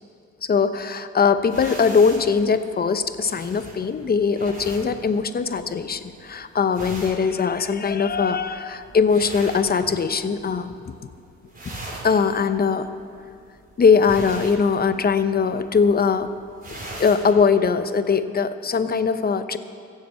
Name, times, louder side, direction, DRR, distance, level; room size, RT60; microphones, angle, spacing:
voice 1, 0.5-10.7 12.0-12.9 13.8-16.3 16.7-19.6, left 5 dB, 30° left, 11 dB, 0.8 m, -21 dB
sound 1, 1.4-10.4 10.7-11.1 11.4-17.3, right 1 dB, 30° right, 4.2 m, -40 dB
15.5 x 7.6 x 7.7 m, 2.4 s
cardioid pair, 90°, 30 cm